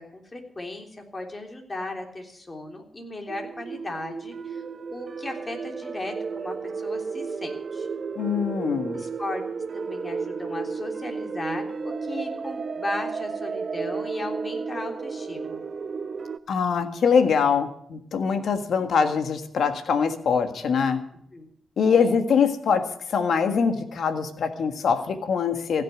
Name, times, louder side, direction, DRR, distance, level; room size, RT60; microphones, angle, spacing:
voice 1, 0.0-4.6 4.9-7.9 8.9-9.4 9.7-15.6 21.3-21.5 22.0-22.2, left 2 dB, 30° left, 3 dB, 3.3 m, -36 dB
sound 1, 3.3-16.4, right 5 dB, 55° right, 0.6 m, -33 dB
voice 2, 8.2-9.0 16.5-21.0 21.8-25.8, left 6 dB, 75° left, 8 dB, 1.7 m, -23 dB
16.0 x 6.7 x 9.9 m, 0.70 s
cardioid pair, 65°, 0 cm